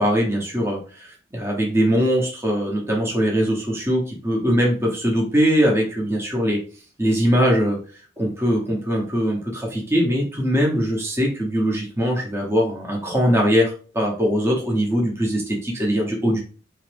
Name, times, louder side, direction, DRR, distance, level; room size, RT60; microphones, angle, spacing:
voice 1, 0.0-6.6 7.0-7.8 8.2-16.4, equal, 15° right, -2 dB, 0.8 m, -21 dB
4.1 x 3.0 x 3.2 m, 0.39 s
head